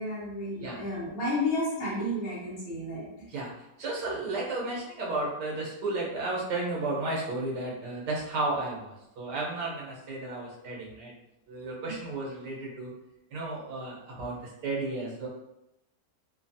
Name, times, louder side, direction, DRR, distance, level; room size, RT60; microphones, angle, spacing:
voice 1, 0.0-3.1, left 1 dB, 50° left, -8 dB, 1.1 m, -31 dB
voice 2, 3.3-11.1 11.5-12.9 13.3-15.3, right 2 dB, 85° right, -4 dB, 1.5 m, -33 dB
3.2 x 2.2 x 2.6 m, 0.89 s
omnidirectional pair, 1.8 m